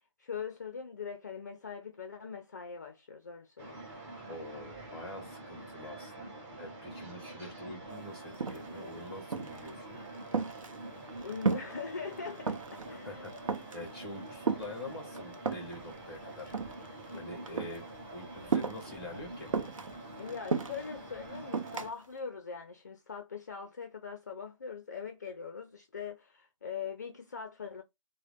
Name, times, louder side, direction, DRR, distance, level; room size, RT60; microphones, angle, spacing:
voice 1, 0.2-3.8 11.2-13.2 17.1-17.2 20.2-27.8, left 6 dB, 35° left, 0.4 m, -42 dB
sound 1, 3.6-21.9, right 2 dB, 25° right, 1.6 m, -46 dB
voice 2, 4.3-10.0 12.9-16.7 17.2-17.8 18.1-19.5, left 1 dB, ahead, 0.7 m, -45 dB
sound 2, 7.9-8.0 8.3-8.9 9.3-9.7 10.1-11.8 12.1-12.9 13.2-13.9 14.5-15.8 16.4-17.2 17.5-17.8 18.5-19.0 19.5-20.9 21.5-21.9, right 5 dB, 80° right, 0.7 m, -33 dB
3.7 x 2.0 x 3.4 m
hypercardioid pair, 170°, 17 cm